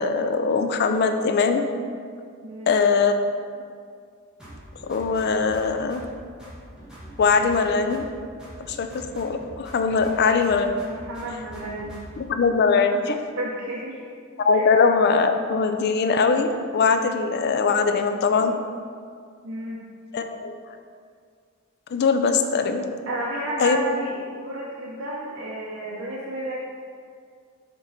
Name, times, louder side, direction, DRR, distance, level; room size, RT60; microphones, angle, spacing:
voice 1, 0.0-1.6 2.7-3.1 4.8-6.0 7.2-8.1 8.7-10.7 12.2-13.2 14.4-18.5 20.1-20.5 21.9-22.9 23.6-23.8, left 5 dB, 50° left, 7 dB, 0.4 m, -21 dB
voice 2, 2.4-2.7 9.9-10.1 10.8-12.0 13.4-14.0 14.5-14.7 18.3-18.4 19.4-19.8 23.1-26.5, right 1 dB, 70° right, -5 dB, 0.7 m, -32 dB
sound 1, 4.4-6.1 6.4-8.1 8.4-10.1 10.4-12.3, right 1 dB, 5° right, 1.3 m, -43 dB
7.4 x 3.1 x 4.1 m, 2.1 s
head